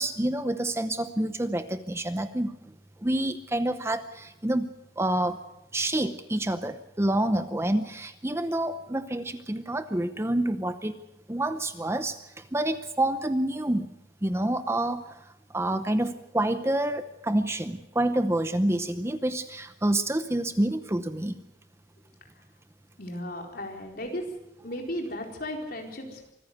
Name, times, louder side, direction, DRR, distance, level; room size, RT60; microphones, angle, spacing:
voice 1, 0.0-2.7 3.0-4.7 5.0-5.4 5.7-11.0 11.3-13.9 14.2-21.4, right 1 dB, 15° right, 10 dB, 0.7 m, -28 dB
voice 2, 23.0-24.2 24.6-26.3, left 1 dB, 55° left, 2 dB, 4.3 m, -35 dB
25.0 x 15.0 x 8.1 m, 0.92 s
head